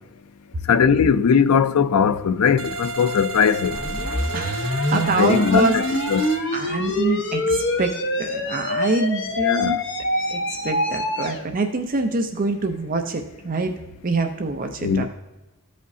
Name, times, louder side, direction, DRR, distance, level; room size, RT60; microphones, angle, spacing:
voice 1, 0.7-3.8 4.9-5.8 6.1-6.2 9.4-9.7 14.8-15.0, left 6 dB, 80° left, 0.4 m, -19 dB
sound 1, 2.6-6.4, right 2 dB, 85° right, 1.3 m, -32 dB
sound 2, 3.7-11.4, left 1 dB, 60° left, 1.0 m, -25 dB
voice 2, 4.3-5.8 6.1-9.8 10.3-13.7 14.0-15.0, right 3 dB, 40° right, 0.6 m, -25 dB
14.0 x 5.1 x 2.7 m
head